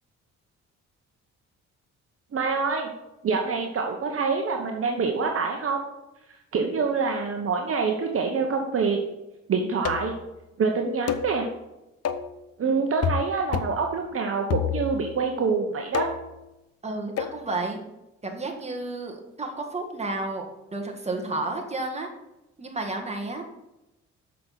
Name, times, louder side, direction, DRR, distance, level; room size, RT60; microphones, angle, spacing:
voice 1, 2.3-2.9 3.2-5.9 6.5-9.0 9.5-10.1 10.6-11.5 12.6-16.1, right 4 dB, 50° right, 3 dB, 1.1 m, -26 dB
sound 1, 9.8-10.2 11.1-11.3 12.0-12.3 13.0-13.3 13.5-13.8 14.5-15.1 15.9-16.3 17.2-17.4, left 8 dB, 55° left, 0.7 m, -28 dB
voice 2, 16.8-17.8 18.2-22.1 22.6-23.4, right 2 dB, 20° right, 2 dB, 1.8 m, -31 dB
7.6 x 6.0 x 5.7 m, 0.94 s
cardioid pair, 90°, 30 cm